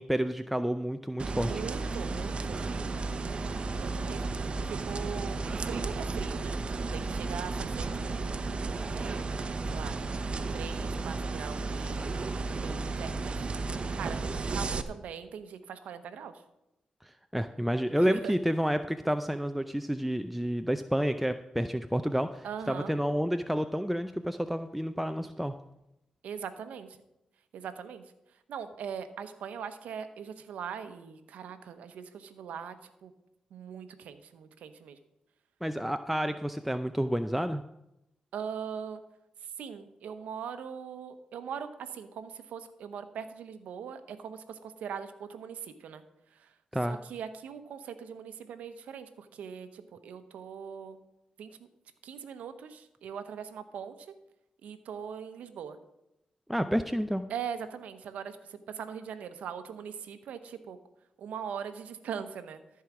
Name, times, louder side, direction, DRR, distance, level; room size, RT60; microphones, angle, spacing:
voice 1, 0.0-1.5 17.0-25.6 35.6-37.6 46.7-47.0 56.5-57.2, equal, 5° right, 8 dB, 0.5 m, -30 dB
sound 1, 1.2-14.8, right 3 dB, 50° right, 0.7 m, -33 dB
voice 2, 1.3-2.6 3.7-4.3 4.6-6.6 6.9-8.4 8.9-9.2 9.7-10.0 10.5-12.0 12.4-13.5 13.9-16.4 18.1-18.3 22.4-22.9 26.2-27.0 27.5-28.0 28.5-33.1 33.5-35.0 38.3-39.0 39.4-46.0 46.3-46.6 46.9-51.0 51.4-51.7 52.0-54.1 54.6-55.8 57.3-60.8 61.2-62.6, right 7 dB, 85° right, 10 dB, 0.8 m, -41 dB
14.0 x 4.8 x 6.0 m, 0.88 s
cardioid pair, 55°, 2 cm